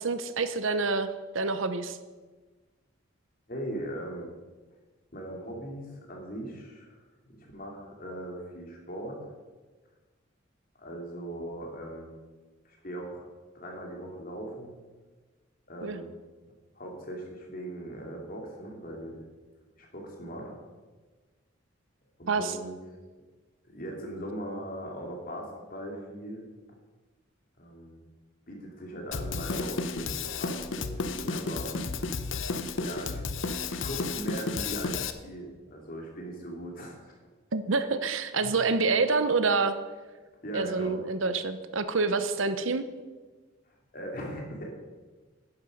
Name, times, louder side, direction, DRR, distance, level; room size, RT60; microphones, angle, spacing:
voice 1, 0.0-2.0 15.8-16.0 22.3-22.5 37.5-39.8 40.5-42.8, right 4 dB, 75° right, 11 dB, 0.8 m, -27 dB
voice 2, 3.5-4.3 5.1-7.0 7.3-9.2 10.8-12.2 12.6-13.3 13.5-14.7 15.7-16.1 16.8-19.3 19.8-20.5 22.2-22.7 23.6-26.5 27.6-28.0 28.5-32.0 32.8-33.2 33.7-37.2 38.4-38.5 40.4-41.0 43.7-44.7, right 1 dB, 45° left, 0 dB, 2.9 m, -39 dB
Drum kit, 29.1-35.1, left 4 dB, 70° left, 0.7 m, -32 dB
11.0 x 10.5 x 5.3 m, 1.3 s
head